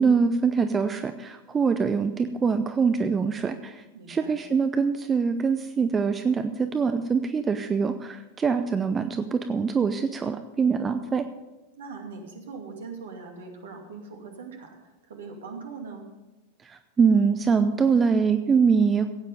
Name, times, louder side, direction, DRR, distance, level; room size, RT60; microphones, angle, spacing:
voice 1, 0.0-11.2 16.6-19.1, right 5 dB, 20° right, 9 dB, 0.6 m, -24 dB
voice 2, 3.9-4.4 11.8-16.1, right 4 dB, 60° right, 3 dB, 2.4 m, -41 dB
15.5 x 9.0 x 5.3 m, 1.0 s
figure-of-eight pair, 90°, 0 cm